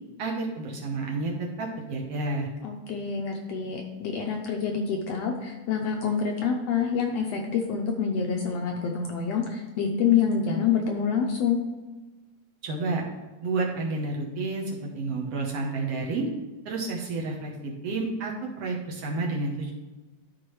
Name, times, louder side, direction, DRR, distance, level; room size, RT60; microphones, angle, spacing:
voice 1, 0.2-2.5 12.6-13.0 13.4-16.3 16.6-19.7, right 3 dB, 65° right, -1 dB, 1.7 m, -30 dB
voice 2, 2.6-11.6, left 6 dB, 75° left, 2 dB, 1.5 m, -27 dB
12.5 x 4.5 x 3.1 m, 1.2 s
omnidirectional pair, 3.5 m